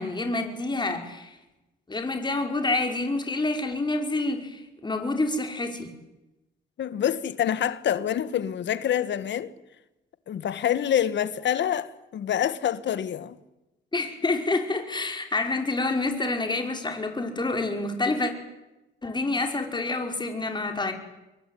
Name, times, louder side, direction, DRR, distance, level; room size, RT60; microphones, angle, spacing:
voice 1, 0.0-1.4 1.9-5.9 13.9-18.3 19.0-20.9, left 2 dB, 20° left, 5.3 m, -28 dB
voice 2, 6.8-9.5 10.3-13.4, left 10 dB, 65° left, 1.7 m, -26 dB
27.0 x 23.0 x 9.5 m
cardioid pair, 90°, 20 cm